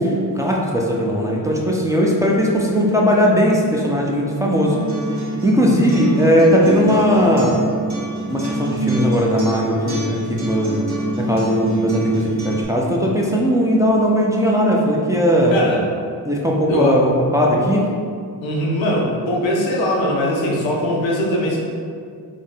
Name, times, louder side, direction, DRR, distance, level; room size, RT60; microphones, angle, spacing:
voice 1, 0.0-4.8 5.4-7.6 8.3-10.8 11.2-15.5 16.2-17.9, equal, 5° right, -3 dB, 0.6 m, -18 dB
Acoustic guitar, 4.7-12.6, right 2 dB, 40° right, 1.2 m, -25 dB
voice 2, 15.5-15.8 16.7-17.0 18.4-21.6, equal, 90° left, -2 dB, 0.7 m, -21 dB
3.6 x 2.0 x 3.9 m, 2.2 s
cardioid pair, 45°, 44 cm